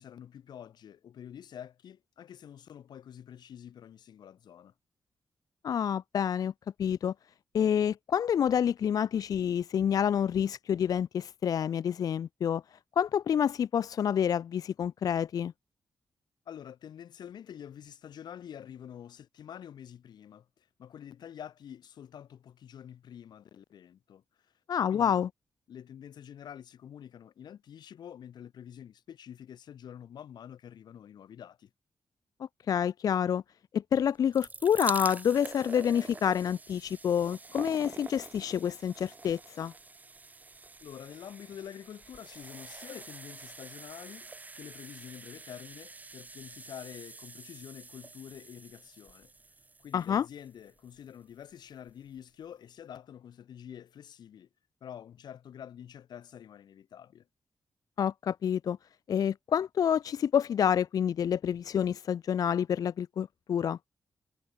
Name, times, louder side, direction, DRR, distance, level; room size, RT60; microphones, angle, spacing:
voice 1, 0.0-4.7 16.5-24.5 24.9-25.2 25.7-31.7 40.8-49.3 49.8-54.5 54.8-57.3, left 9 dB, 85° left, 3.5 m, -47 dB
voice 2, 5.6-6.5 6.8-7.1 7.5-12.6 13.0-15.5 24.7-25.3 32.7-33.4 33.7-39.7 49.9-50.3 58.0-58.8 59.1-63.8, left 8 dB, 60° left, 0.4 m, -28 dB
sound 1, 34.1-51.1 51.9-52.0 52.2-52.3, right 3 dB, 25° right, 0.9 m, -46 dB
wide cardioid pair, 130°, 7 cm